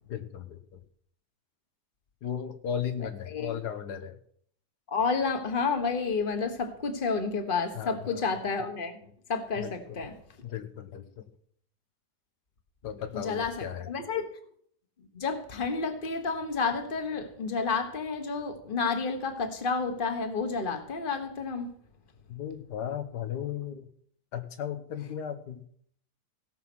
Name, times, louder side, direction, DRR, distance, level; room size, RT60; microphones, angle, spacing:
voice 1, 0.1-0.8 2.2-4.2 7.7-8.2 9.6-10.0 10.4-11.3 12.8-13.9 22.3-23.9 24.3-25.6, left 9 dB, 80° left, 1.6 m, -36 dB
voice 2, 3.0-3.6 4.9-9.0 9.3-10.2 13.1-14.3 15.1-21.7, left 4 dB, 35° left, 1.5 m, -30 dB
17.0 x 5.8 x 6.2 m
omnidirectional pair, 1.7 m